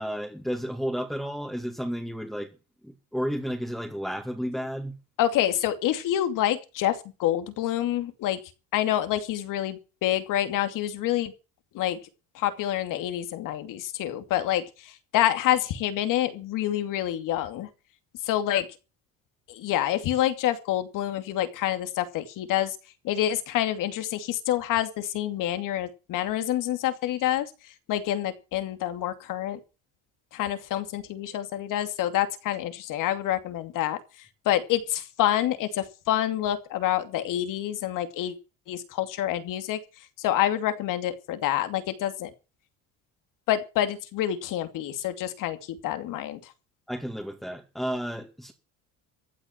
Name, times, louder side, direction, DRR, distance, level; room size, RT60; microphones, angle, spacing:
voice 1, 0.0-2.6 2.8-4.9 46.9-48.5, equal, ahead, 2.3 m, -32 dB
voice 2, 5.2-8.4 8.7-11.3 11.7-12.0 12.3-17.7 18.2-18.6 19.5-22.8 23.0-27.5 27.9-29.6 30.3-34.0 34.5-38.3 38.7-39.8 40.2-42.3 43.5-46.4, left 12 dB, 70° left, 2.6 m, -27 dB
15.0 x 8.6 x 7.4 m
cardioid pair, 115°, 33 cm